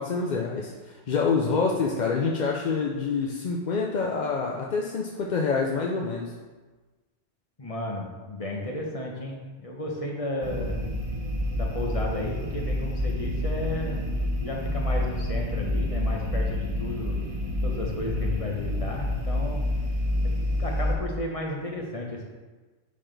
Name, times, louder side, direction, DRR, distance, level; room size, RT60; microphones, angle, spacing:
voice 1, 0.0-6.3, left 4 dB, 50° left, -1 dB, 0.6 m, -27 dB
voice 2, 7.6-10.8 11.5-14.1 14.4-17.2 17.6-19.6 20.2-20.3 20.6-22.2, left 1 dB, 30° left, -1 dB, 1.0 m, -33 dB
sound 1, 10.4-21.0, left 1 dB, 30° right, 0.9 m, -28 dB
10.0 x 4.0 x 3.4 m, 1.3 s
omnidirectional pair, 1.2 m